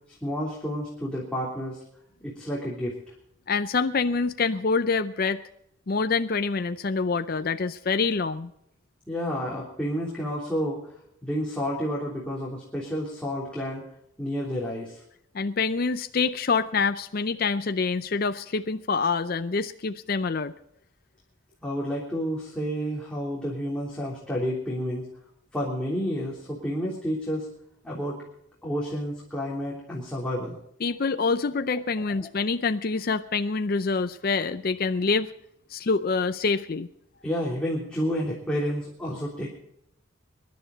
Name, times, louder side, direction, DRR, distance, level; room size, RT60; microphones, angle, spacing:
voice 1, 0.2-1.8 2.2-2.9 9.1-10.9 11.2-13.8 14.2-15.0 21.6-25.1 25.5-27.5 27.8-28.2 28.6-30.5 37.2-39.5, equal, 5° left, -5 dB, 3.3 m, -30 dB
voice 2, 3.5-5.4 5.9-8.5 15.3-20.5 30.8-35.3 35.7-36.9, left 4 dB, 45° left, 9 dB, 0.5 m, -26 dB
23.5 x 11.5 x 4.0 m, 0.74 s
head